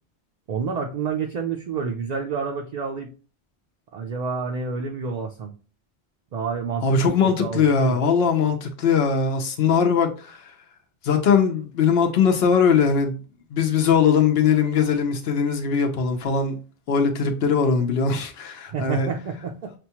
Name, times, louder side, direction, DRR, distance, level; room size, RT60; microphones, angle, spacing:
voice 1, 0.5-3.1 3.9-5.5 6.3-7.1 7.4-8.0 18.7-19.7, right 5 dB, 55° right, 0.5 m, -29 dB
voice 2, 6.8-10.5 11.0-13.2 13.5-16.6 16.9-19.1, left 6 dB, 75° left, 0.9 m, -20 dB
5.9 x 2.2 x 2.8 m
omnidirectional pair, 1.0 m